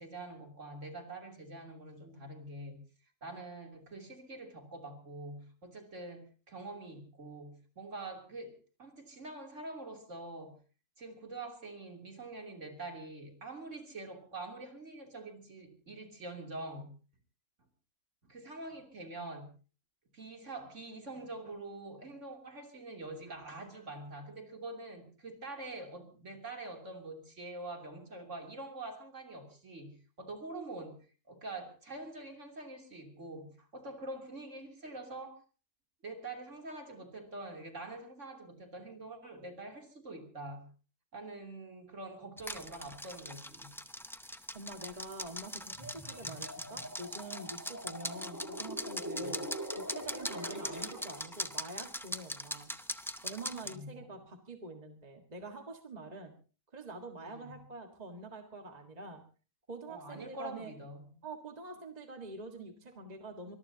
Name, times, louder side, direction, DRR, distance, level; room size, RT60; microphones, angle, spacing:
voice 1, 0.0-2.8 3.2-10.6 11.0-16.9 18.2-19.5 20.1-31.0 31.3-35.4 36.0-40.7 41.1-43.8 49.2-49.4 53.1-53.2 53.6-54.1 57.2-57.6 59.9-61.1, right 2 dB, 65° right, 3 dB, 3.5 m, -45 dB
sound 1, 42.4-53.7, equal, 5° left, 0.4 m, -41 dB
voice 2, 44.5-49.5 49.8-52.7 53.2-56.3 56.7-59.2 59.7-60.7 61.2-63.6, right 2 dB, 30° right, 4 dB, 1.8 m, -46 dB
sound 2, 45.7-51.5, equal, 15° right, 2.3 m, -43 dB
24.0 x 21.0 x 2.8 m, 0.37 s
omnidirectional pair, 1.4 m